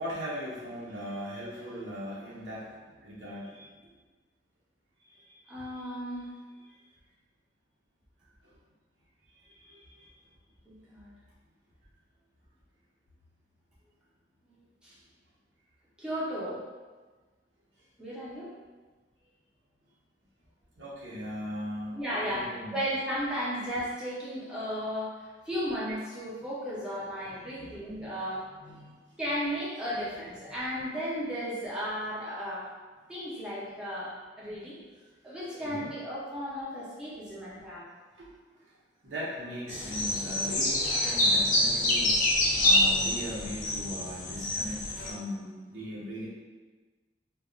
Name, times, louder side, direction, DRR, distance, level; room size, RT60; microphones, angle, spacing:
voice 1, 0.0-2.7 3.0-3.7 5.2-5.8 9.7-10.1 20.8-21.9 22.3-22.8 27.4-27.7 28.0-28.1 28.6-29.0 33.3-33.4 35.5-35.9 38.2-38.3 39.0-42.1 42.6-46.2, equal, 85° right, -7 dB, 0.9 m, -39 dB
voice 2, 5.5-6.3 10.7-11.1 14.5-15.0 16.0-16.6 18.0-18.5 21.9-28.5 29.2-32.7 33.1-34.8 35.2-37.9, equal, 5° right, -9 dB, 0.6 m, -35 dB
sound 1, 39.7-45.1, left 1 dB, 45° left, 0.5 m, -26 dB
2.3 x 2.1 x 3.6 m, 1.3 s
head